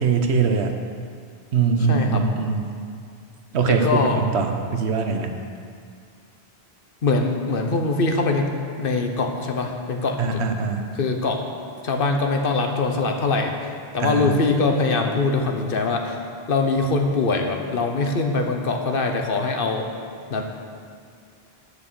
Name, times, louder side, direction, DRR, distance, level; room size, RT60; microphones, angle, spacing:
voice 1, 0.0-0.7 1.5-2.7 3.5-5.3 10.2-10.9 14.0-14.3, right 5 dB, 85° right, 5 dB, 1.1 m, -22 dB
voice 2, 1.9-2.2 3.6-4.2 7.0-8.5 8.8-10.4 10.9-11.4 11.8-16.2 16.5-19.9 20.3-20.4, left 3 dB, 60° left, 4 dB, 1.1 m, -23 dB
8.7 x 6.7 x 6.8 m, 2.2 s
omnidirectional pair, 1.1 m